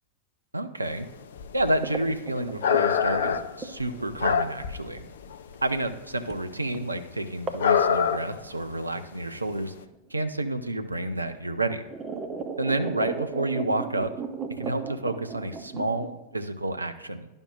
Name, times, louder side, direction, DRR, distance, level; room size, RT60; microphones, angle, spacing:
voice 1, 0.5-1.1 1.5-5.0 5.6-9.7 10.1-11.8 12.6-14.1 14.6-17.3, right 1 dB, 85° right, 9 dB, 0.5 m, -29 dB
sound 1, 1.1-1.2 1.3-2.0 2.4-4.9 5.2-5.9 6.3-6.4 6.7-6.8 7.6-8.5 8.8-8.9 9.5-9.6, left 7 dB, 60° left, 0.4 m, -25 dB
sound 2, 1.8-4.2 5.0-5.1 6.3-6.5 6.7-6.8 7.5-7.7 8.0-8.8 9.9-10.0 11.0-11.1 11.5-16.1, right 4 dB, 25° right, 0.7 m, -36 dB
11.5 x 5.3 x 2.4 m, 1.0 s
figure-of-eight pair, 90°, 0 cm